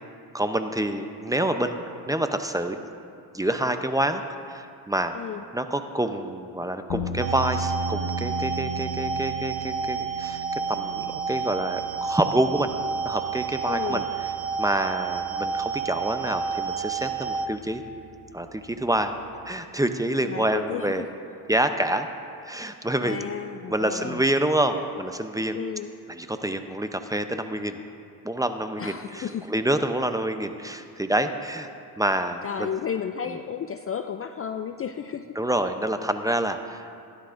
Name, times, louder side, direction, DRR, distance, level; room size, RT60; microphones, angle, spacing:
voice 1, 0.3-1.8 2.1-2.9 3.3-4.2 4.5-5.1 5.5-12.7 13.0-14.0 14.6-17.8 18.3-19.1 19.4-21.0 21.5-22.1 22.4-23.3 23.7-25.6 26.1-27.8 28.2-31.7 32.0-32.7 35.4-36.9, right 1 dB, 10° right, 7 dB, 0.6 m, -27 dB
voice 2, 5.1-5.4 13.7-14.1 20.2-21.1 23.0-24.2 25.5-25.9 28.8-29.5 32.4-35.3, left 8 dB, 30° left, 8 dB, 0.4 m, -33 dB
sound 1, 6.9-19.4, right 1 dB, 90° left, 1.1 m, -37 dB
sound 2, 7.2-17.5, right 6 dB, 85° right, 1.0 m, -30 dB
16.5 x 11.0 x 2.6 m, 2.4 s
supercardioid pair, 75°, 46 cm